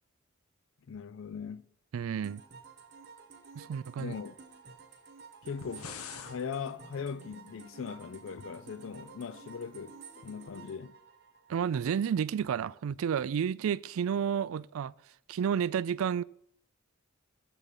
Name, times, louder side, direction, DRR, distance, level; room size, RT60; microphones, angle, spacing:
voice 1, 0.9-1.7 4.0-4.3 5.4-11.0, left 6 dB, 65° left, 0.4 m, -40 dB
voice 2, 1.9-2.4 3.6-4.1 11.5-14.9 15.3-16.2, right 8 dB, 75° right, 0.3 m, -31 dB
sound 1, 2.2-11.9, right 5 dB, 50° right, 1.1 m, -52 dB
sound 2, 5.4-6.4, left 6 dB, 85° left, 1.0 m, -44 dB
sound 3, 5.7-10.7, left 1 dB, 5° left, 0.6 m, -58 dB
7.1 x 6.7 x 7.4 m
head